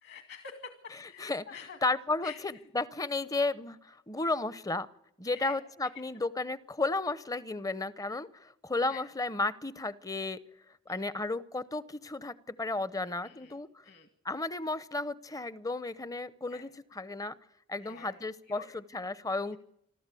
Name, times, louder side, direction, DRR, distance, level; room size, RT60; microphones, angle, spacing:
voice 1, 0.0-1.8 2.2-2.4 5.3-5.6 8.9-9.0 10.9-11.1 13.0-13.6 13.8-14.1 16.5-16.7 17.8-18.7, left 6 dB, 55° left, 8 dB, 1.9 m, -47 dB
voice 2, 1.0-1.5 1.8-4.9 5.2-10.4 10.9-13.8 14.2-17.3 17.7-19.6, left 3 dB, 15° left, 17 dB, 0.7 m, -33 dB
27.0 x 13.0 x 8.3 m, 0.76 s
head